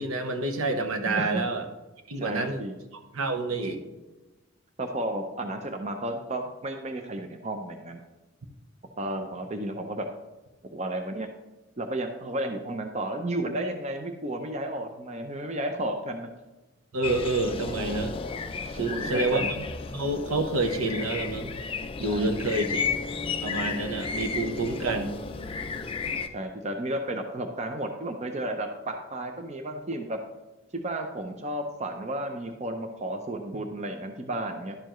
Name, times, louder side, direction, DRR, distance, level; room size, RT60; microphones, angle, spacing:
voice 1, 0.0-1.7 2.1-2.6 3.1-3.9 9.1-9.3 16.9-18.1 18.7-19.7 19.9-21.5 22.0-22.9 23.4-25.1, right 2 dB, 80° right, 6 dB, 1.0 m, -28 dB
voice 2, 1.0-1.4 2.2-2.7 4.8-8.0 9.0-10.1 10.6-11.3 11.8-16.3 18.8-19.5 22.0-22.3 26.3-30.2 30.7-34.8, right 1 dB, 30° right, 5 dB, 0.5 m, -33 dB
sound 1, 17.0-26.3, left 5 dB, 25° left, 0.3 m, -33 dB
11.0 x 6.8 x 3.1 m, 1.1 s
head